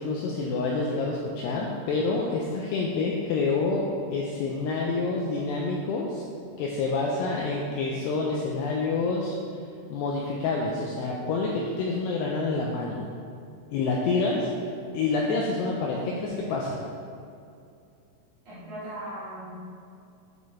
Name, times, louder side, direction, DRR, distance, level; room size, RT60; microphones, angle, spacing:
voice 1, 0.0-3.8 4.1-6.2 6.6-9.4 9.9-13.0 13.7-14.4 14.9-16.8, left 3 dB, 80° left, -2 dB, 2.4 m, -27 dB
voice 2, 18.4-19.7, right 1 dB, 55° right, -11 dB, 2.3 m, -39 dB
9.0 x 4.2 x 4.7 m, 2.4 s
omnidirectional pair, 5.4 m